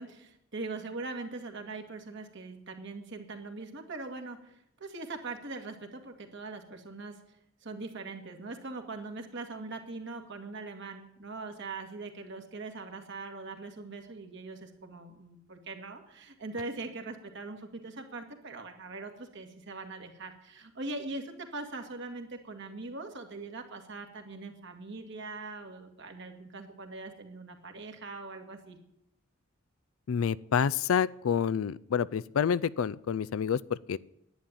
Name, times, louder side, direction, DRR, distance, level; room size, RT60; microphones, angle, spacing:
voice 1, 0.0-7.4 7.6-28.8, right 3 dB, 60° right, 4 dB, 2.0 m, -41 dB
voice 2, 30.1-34.0, left 7 dB, 85° left, 19 dB, 0.4 m, -28 dB
11.0 x 9.4 x 9.0 m, 0.78 s
head